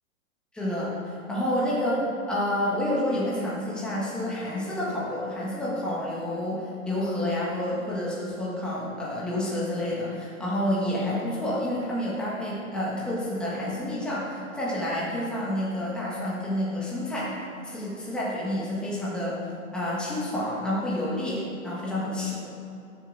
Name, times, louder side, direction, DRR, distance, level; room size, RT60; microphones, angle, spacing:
voice 1, 0.5-19.4 19.7-22.4, left 1 dB, ahead, -7 dB, 1.5 m, -29 dB
12.0 x 7.2 x 5.1 m, 2.7 s
hypercardioid pair, 150°, 42 cm